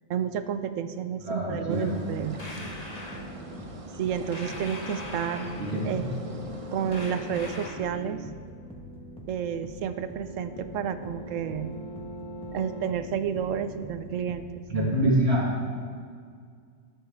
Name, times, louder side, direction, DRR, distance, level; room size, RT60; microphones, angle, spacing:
voice 1, 0.1-2.4 4.0-5.5 5.8-6.1 6.7-8.2 9.3-11.8 12.5-14.4, right 8 dB, 90° right, 10 dB, 1.0 m, -31 dB
voice 2, 1.2-2.0 5.6-6.0 14.7-15.5, right 1 dB, 50° right, -5 dB, 1.8 m, -25 dB
sound 1, 1.7-7.7, right 3 dB, 30° right, 0.7 m, -43 dB
sound 2, 2.1-14.4, left 1 dB, 5° left, 1.2 m, -42 dB
sound 3, 2.4-3.3 4.3-5.9 6.9-8.0, left 2 dB, 35° left, 1.3 m, -41 dB
19.0 x 7.4 x 3.5 m, 2.1 s
omnidirectional pair, 1.3 m